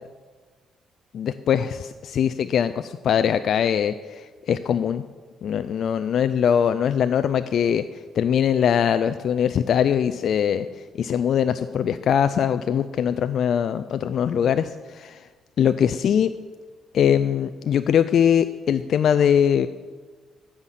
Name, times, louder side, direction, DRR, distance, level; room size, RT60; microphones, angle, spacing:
voice 1, 1.1-5.0 5.4-15.3 15.6-16.3 16.9-19.7, left 8 dB, 65° left, 11 dB, 0.4 m, -22 dB
16.0 x 5.8 x 7.4 m, 1.4 s
cardioid pair, 90°, 0 cm